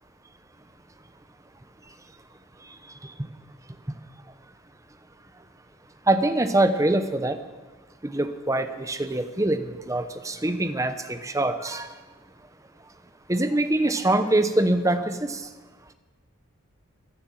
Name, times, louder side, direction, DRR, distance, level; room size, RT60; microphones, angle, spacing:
voice 1, 6.1-7.4 8.0-11.9 13.3-15.4, right 1 dB, 15° right, 10 dB, 0.8 m, -24 dB
16.0 x 10.5 x 7.5 m, 1.3 s
head